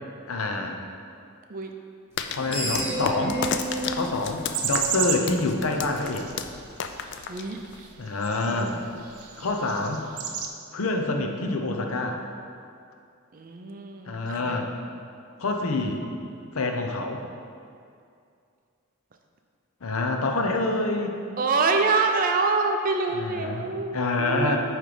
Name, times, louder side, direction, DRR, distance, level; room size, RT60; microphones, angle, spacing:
voice 1, 0.3-0.8 2.3-3.4 3.9-6.2 8.0-8.8 9.4-10.0 10.7-12.2 14.1-14.7 15.4-16.0 16.5-17.2 19.8-21.2 23.1-24.6, left 2 dB, 80° left, 3 dB, 0.7 m, -27 dB
sound 1, 2.2-7.9, left 7 dB, 55° left, 0.3 m, -33 dB
Screech, 2.2-5.4, right 1 dB, 10° right, 1.4 m, -32 dB
voice 2, 2.6-3.4 7.3-7.6 8.5-8.9 13.3-14.7 15.7-16.1 21.4-24.6, right 4 dB, 40° right, 4 dB, 0.5 m, -27 dB
sound 2, 3.4-10.5, right 7 dB, 85° right, 0.6 m, -34 dB
8.8 x 3.2 x 4.9 m, 2.4 s
head